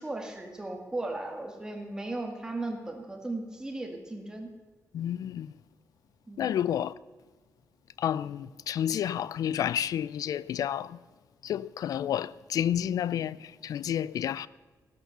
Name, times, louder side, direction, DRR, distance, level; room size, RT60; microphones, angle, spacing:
voice 1, 0.0-4.5 6.3-6.6, right 2 dB, 10° right, 1.8 m, -36 dB
voice 2, 4.9-5.5 6.4-7.0 8.0-11.0 11.4-14.5, left 10 dB, 75° left, 0.4 m, -30 dB
15.0 x 11.5 x 6.8 m
wide cardioid pair, 180°, 6 cm